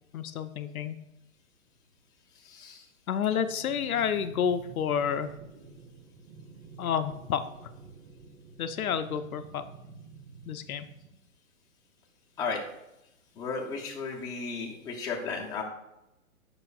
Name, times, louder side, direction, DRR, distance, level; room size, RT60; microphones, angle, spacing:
voice 1, 0.1-1.0 3.1-5.3 6.8-7.7 8.6-9.6 10.5-10.9, left 8 dB, 80° left, 9 dB, 0.7 m, -30 dB
voice 2, 2.3-2.9 12.4-12.6 13.3-15.6, left 4 dB, 10° left, -3 dB, 0.8 m, -34 dB
sound 1, 3.2-11.2, right 4 dB, 45° right, 0.8 m, -50 dB
8.0 x 5.7 x 2.4 m, 0.86 s
hypercardioid pair, 140°, 43 cm